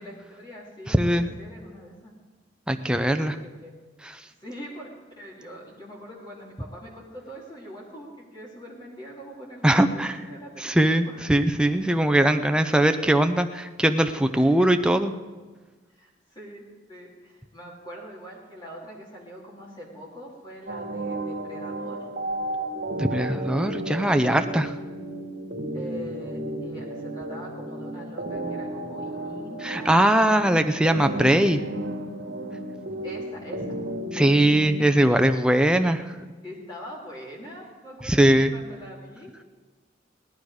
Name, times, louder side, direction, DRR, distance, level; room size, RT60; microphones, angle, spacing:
voice 1, 0.0-2.1 3.2-3.7 4.4-11.2 14.3-14.6 15.9-22.0 25.7-30.1 33.0-33.8 34.1-34.3 36.4-39.4, equal, 25° left, -4 dB, 2.8 m, -43 dB
voice 2, 0.9-1.3 2.7-3.4 9.6-10.1 10.6-15.1 23.0-24.7 29.6-31.6 34.1-36.0 38.0-38.5, right 1 dB, 5° right, 7 dB, 0.6 m, -21 dB
sound 1, 20.7-34.9, right 1 dB, 65° right, 2.0 m, -33 dB
17.5 x 11.5 x 4.8 m, 1.3 s
head